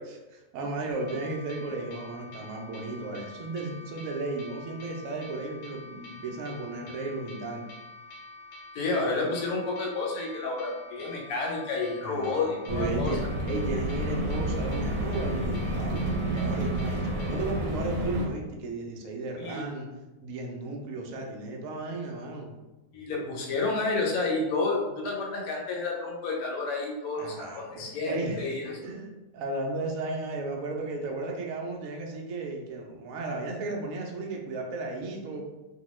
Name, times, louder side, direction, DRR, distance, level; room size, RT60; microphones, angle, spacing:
voice 1, 0.1-7.6 12.0-19.9 20.2-22.5 27.2-29.1 29.3-35.4, right 2 dB, 70° right, 0 dB, 0.8 m, -35 dB
sound 1, 0.9-17.6, left 2 dB, 80° left, 1.3 m, -47 dB
voice 2, 8.7-13.2 19.4-19.8 22.9-28.8, left 3 dB, 65° left, -2 dB, 1.0 m, -30 dB
sound 2, 12.7-18.3, right 1 dB, 90° right, 1.3 m, -30 dB
2.8 x 2.2 x 3.0 m, 1.1 s
omnidirectional pair, 1.9 m